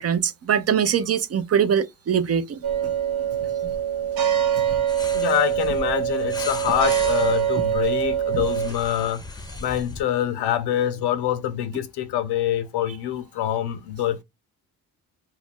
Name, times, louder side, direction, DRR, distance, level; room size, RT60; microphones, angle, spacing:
voice 1, 0.0-2.9 3.6-3.7 4.7-4.8 8.3-8.4, right 8 dB, 40° right, 0.5 m, -23 dB
sound 1, 2.6-8.7, right 9 dB, 70° right, 0.9 m, -24 dB
sound 2, 4.9-10.0, left 2 dB, 10° left, 0.6 m, -38 dB
voice 2, 5.1-9.2 9.6-14.2, left 11 dB, 80° left, 0.6 m, -25 dB
2.4 x 2.1 x 3.5 m
supercardioid pair, 65°, 39 cm